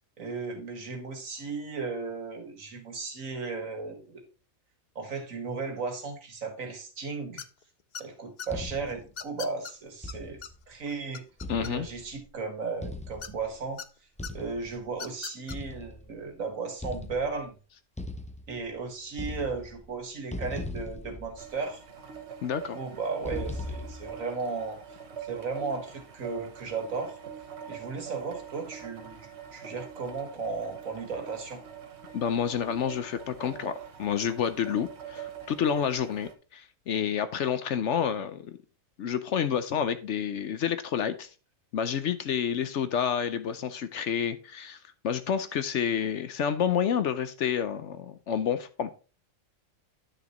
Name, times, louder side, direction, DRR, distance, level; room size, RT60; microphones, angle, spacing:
voice 1, 0.2-4.2 5.0-7.4 8.0-10.4 10.7-11.2 11.6-13.8 14.3-17.6 18.5-21.8 22.7-24.8 25.2-27.2 27.7-31.6, right 4 dB, 70° right, 2.1 m, -35 dB
sound 1, 7.4-7.6 7.9-8.5 9.2-9.7 10.1-10.2 10.4-10.5 10.9-12.0 13.2-13.9 14.2-14.3 14.9-15.6, left 8 dB, 85° left, 0.4 m, -39 dB
sound 2, 8.5-9.1 10.0-10.6 11.4-12.2 12.8-13.6 14.2-14.8 15.5-16.3 16.8-17.5 18.0-18.8 19.1-20.0 20.3-21.8 23.2-24.2, left 1 dB, 5° left, 0.5 m, -39 dB
voice 2, 11.5-11.9 22.4-22.8 32.1-33.7 34.0-38.6 39.0-41.3 41.7-44.8 45.0-48.9, left 8 dB, 65° left, 0.9 m, -29 dB
sound 3, 21.4-36.3, right 8 dB, 55° right, 1.2 m, -44 dB
10.0 x 6.5 x 3.0 m
omnidirectional pair, 1.5 m